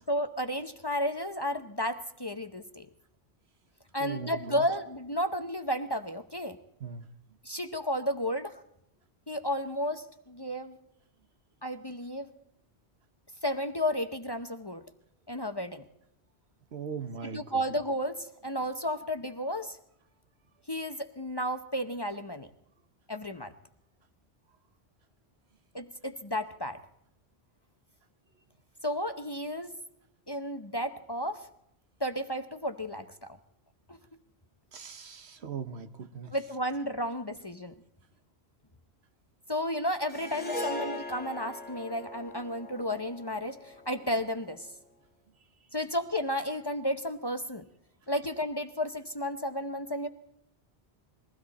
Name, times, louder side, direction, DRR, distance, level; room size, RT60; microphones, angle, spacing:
voice 1, 0.1-2.9 3.9-6.6 7.4-8.6 9.3-10.8 11.6-12.3 13.4-14.8 15.3-15.8 17.2-19.8 20.7-22.5 23.1-23.5 25.7-26.8 28.8-29.7 30.3-31.5 32.0-33.1 33.9-34.0 36.3-37.7 39.5-44.7 45.7-47.7 48.1-50.1, equal, 25° left, 8 dB, 0.7 m, -32 dB
voice 2, 4.0-4.6 6.8-7.0 16.7-17.6 34.7-36.3, right 6 dB, 75° right, 9 dB, 1.4 m, -39 dB
Harp, 40.1-44.5, left 2 dB, 10° left, 2.2 m, -40 dB
21.5 x 16.0 x 4.1 m, 0.78 s
omnidirectional pair, 1.1 m